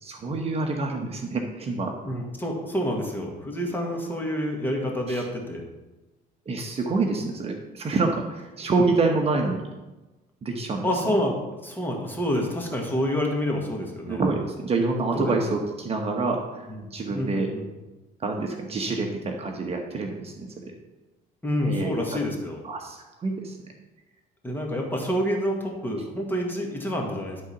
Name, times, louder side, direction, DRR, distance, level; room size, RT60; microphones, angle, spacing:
voice 1, 0.0-1.9 5.1-5.2 6.5-9.7 10.4-10.8 14.1-17.5 18.2-20.7 21.6-21.9 22.6-23.6, right 3 dB, 35° right, 2 dB, 1.1 m, -27 dB
voice 2, 2.1-5.6 10.8-14.2 15.1-15.3 16.7-16.8 17.1-17.6 21.4-22.6 24.4-27.4, equal, 10° left, 0 dB, 1.9 m, -28 dB
11.5 x 4.0 x 5.9 m, 1.1 s
cardioid pair, 110°, 17 cm